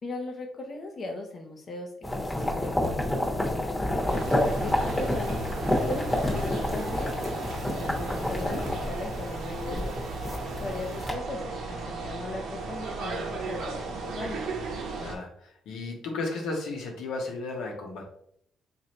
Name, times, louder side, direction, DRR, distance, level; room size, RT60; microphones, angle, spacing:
voice 1, 0.0-1.9 2.2-5.4 5.8-7.2 7.8-10.0 10.4-14.4, left 2 dB, 45° left, 2 dB, 0.6 m, -38 dB
sound 1, 2.0-11.1, left 1 dB, 15° left, 1.0 m, -29 dB
sound 2, 4.1-15.2, right 3 dB, 80° right, 0.7 m, -36 dB
voice 2, 15.0-18.1, left 3 dB, 85° left, 1 dB, 0.9 m, -34 dB
3.2 x 2.6 x 3.9 m, 0.66 s
cardioid pair, 90°, 0 cm